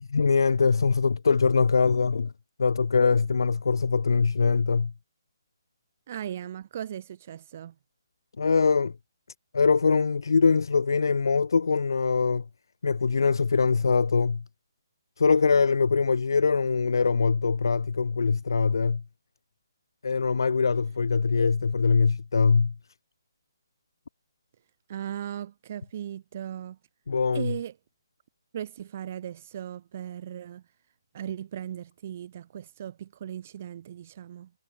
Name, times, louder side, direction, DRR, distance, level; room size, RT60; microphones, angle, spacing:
voice 1, 0.1-2.3 2.6-4.9 8.4-8.9 9.5-12.4 12.8-14.4 15.2-19.0 20.0-22.7 27.1-27.5, left 5 dB, 65° left, 1.1 m, -23 dB
voice 2, 6.1-7.7 24.9-26.8 27.3-27.7 28.5-30.6 31.1-34.5, right 10 dB, 25° right, 0.4 m, -37 dB
hypercardioid pair, 180°, 2 cm